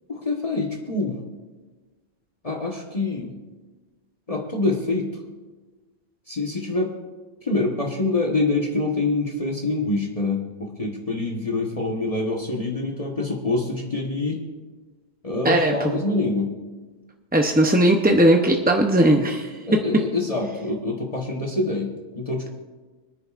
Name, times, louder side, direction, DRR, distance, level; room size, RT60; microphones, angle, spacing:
voice 1, 0.1-1.2 2.4-3.3 4.3-5.1 6.3-7.0 7.4-14.4 15.2-16.5 19.7-22.5, left 2 dB, 35° left, -1 dB, 1.2 m, -25 dB
voice 2, 15.4-15.9 17.3-19.5, right 1 dB, 15° right, 2 dB, 0.4 m, -18 dB
23.0 x 10.5 x 2.4 m, 1.3 s
omnidirectional pair, 1.1 m